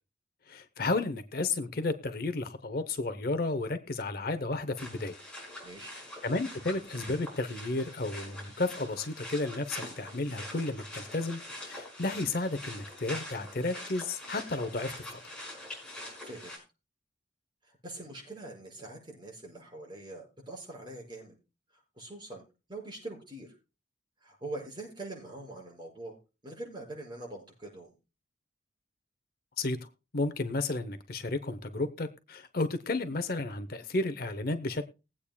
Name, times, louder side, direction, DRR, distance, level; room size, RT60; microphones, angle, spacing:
voice 1, 0.5-5.2 6.2-15.2 29.6-29.8 30.1-34.8, left 2 dB, 50° left, 9 dB, 0.8 m, -32 dB
sound 1, 4.8-16.6, left 1 dB, 5° left, 5.2 m, -44 dB
voice 2, 5.6-5.9 16.2-16.6 17.6-21.4 21.7-22.4 22.7-23.5 24.2-26.2 26.4-27.9, right 2 dB, 25° right, -1 dB, 6.1 m, -43 dB
21.0 x 8.5 x 2.3 m, 0.29 s
head